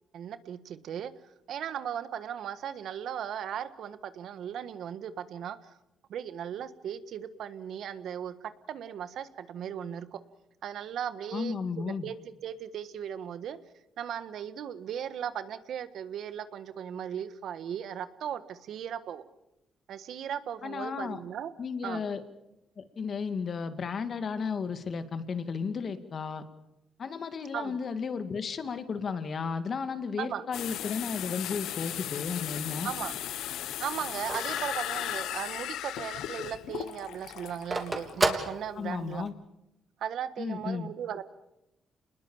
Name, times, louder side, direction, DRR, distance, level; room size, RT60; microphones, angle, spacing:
voice 1, 0.1-1.1 1.5-5.7 6.1-10.2 10.6-11.6 11.8-13.6 14.0-19.2 19.9-21.5 21.8-22.0 27.5-27.8 30.2-30.4 32.8-33.1 33.8-39.3 40.0-41.2, right 9 dB, 70° right, 12 dB, 1.4 m, -37 dB
voice 2, 11.3-12.1 20.6-21.2 21.6-22.2 22.8-26.4 27.0-32.9 38.8-39.3 40.4-40.9, left 5 dB, 50° left, 10 dB, 2.2 m, -34 dB
sound 1, 30.5-38.1, left 12 dB, 85° left, 1.1 m, -36 dB
Telephone, 32.3-35.7 36.1-36.2 36.4-39.3, right 2 dB, 20° right, 3.4 m, -33 dB
28.0 x 20.5 x 7.3 m, 0.91 s
cardioid pair, 90°, 0 cm